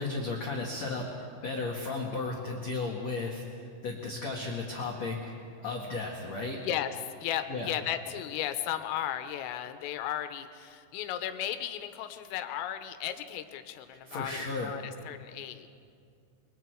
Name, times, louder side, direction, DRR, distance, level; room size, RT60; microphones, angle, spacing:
voice 1, 0.0-5.2 5.6-6.6 7.5-7.7 14.1-14.7, left 3 dB, 55° left, -1 dB, 1.9 m, -34 dB
voice 2, 6.6-15.7, left 11 dB, 90° left, 9 dB, 3.6 m, -35 dB
29.5 x 23.5 x 4.7 m, 2.4 s
omnidirectional pair, 5.8 m